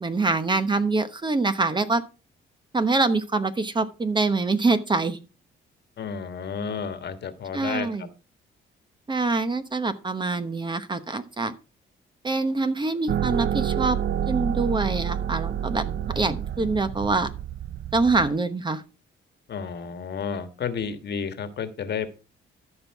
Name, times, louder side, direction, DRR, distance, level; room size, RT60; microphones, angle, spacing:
voice 1, 0.0-2.0 2.7-5.2 7.5-8.1 9.1-11.5 12.2-14.0 14.3-15.8 16.1-17.3 17.9-18.8, right 3 dB, 25° right, 11 dB, 1.0 m, -25 dB
voice 2, 6.0-7.9 19.5-22.1, left 6 dB, 60° left, 10 dB, 1.4 m, -31 dB
sound 1, 13.1-18.3, right 9 dB, 55° right, 0.6 m, -28 dB
13.5 x 5.5 x 4.6 m, 0.32 s
cardioid pair, 90°, 20 cm